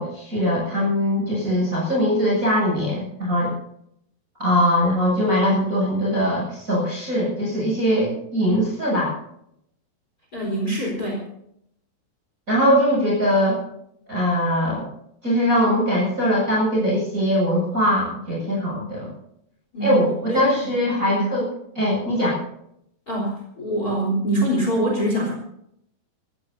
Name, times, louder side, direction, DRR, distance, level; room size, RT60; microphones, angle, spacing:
voice 1, 0.0-3.5 4.4-9.1 12.5-13.6 14.1-14.9 15.2-19.1 19.8-21.4 21.7-22.4, equal, 20° right, -5 dB, 8.3 m, -21 dB
voice 2, 10.3-11.2 19.7-20.5 21.0-21.3 23.1-25.3, right 1 dB, 20° left, 0 dB, 4.2 m, -24 dB
25.5 x 15.5 x 2.8 m, 0.74 s
omnidirectional pair, 4.9 m